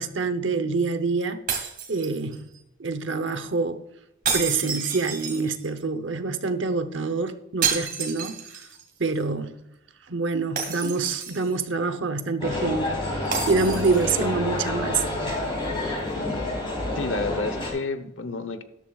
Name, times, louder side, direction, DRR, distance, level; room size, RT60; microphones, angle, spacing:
voice 1, 0.0-2.5 2.8-3.9 4.3-8.4 9.0-9.6 10.1-15.5, right 4 dB, 65° right, 0.9 m, -26 dB
sound 1, 1.5-2.6 4.2-5.8 7.6-8.8 9.1-9.2 10.6-11.6 13.3-14.2, right 6 dB, 50° right, 2.2 m, -30 dB
sound 2, 12.4-17.7, left 2 dB, 25° left, 3.7 m, -28 dB
voice 2, 16.9-18.6, left 3 dB, 80° left, 1.0 m, -30 dB
13.0 x 11.5 x 2.4 m
head